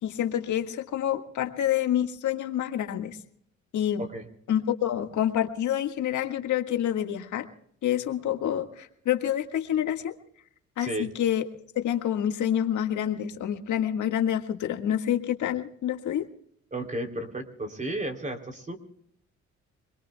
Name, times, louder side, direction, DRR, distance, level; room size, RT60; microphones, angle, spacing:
voice 1, 0.0-3.2 3.7-4.0 4.5-7.5 7.8-10.1 10.8-11.5 11.8-16.3, left 10 dB, 75° left, 6 dB, 1.8 m, -27 dB
voice 2, 10.8-11.1 16.7-18.8, right 1 dB, 25° right, 3 dB, 3.3 m, -33 dB
26.5 x 22.5 x 2.3 m, 0.68 s
cardioid pair, 90°, 30 cm